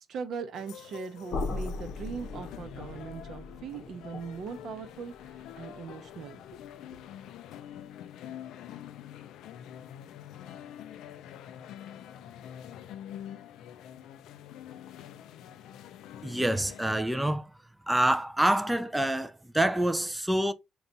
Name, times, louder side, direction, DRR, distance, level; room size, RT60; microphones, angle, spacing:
voice 1, 0.1-6.6 6.9-7.0, right 5 dB, 70° right, 0.7 m, -40 dB
sound 1, 0.5-17.0, left 10 dB, 85° left, 0.3 m, -46 dB
sound 2, 1.3-7.2, left 3 dB, 65° left, 0.7 m, -40 dB
voice 2, 16.2-17.5 17.9-20.5, right 1 dB, 10° right, 0.3 m, -26 dB
4.0 x 2.3 x 3.9 m
cardioid pair, 90°, 0 cm